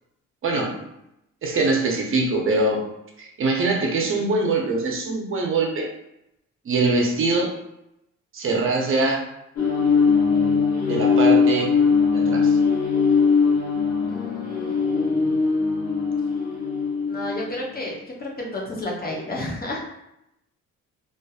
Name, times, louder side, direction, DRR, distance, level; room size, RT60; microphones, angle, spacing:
voice 1, 0.4-0.9 1.4-2.8 3.2-5.9 6.7-7.5 8.3-9.2 10.9-11.7 12.1-12.6, right 3 dB, 45° right, 1 dB, 0.7 m, -23 dB
sound 1, 9.6-17.8, left 5 dB, 60° left, 0.8 m, -20 dB
voice 2, 14.1-15.1 17.1-19.9, left 1 dB, 30° left, -3 dB, 0.7 m, -32 dB
2.5 x 2.4 x 2.3 m, 0.83 s
cardioid pair, 90°, 30 cm